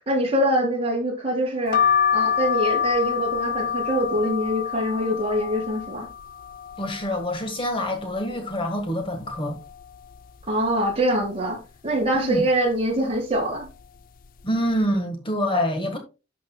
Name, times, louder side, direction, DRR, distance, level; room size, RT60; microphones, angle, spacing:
voice 1, 0.0-1.8 2.1-6.1 10.5-13.7, equal, 30° right, 4.4 m, -24 dB
sound 1, 1.7-7.4 7.9-8.6 9.0-9.1 9.3-10.4 10.9-11.3 12.0-12.4 13.1-13.4 13.7-13.9, left 8 dB, 45° left, 0.3 m, -27 dB
voice 2, 6.8-9.6 12.1-12.4 14.4-16.0, equal, 25° left, 1.6 m, -26 dB
11.5 x 7.3 x 2.3 m
head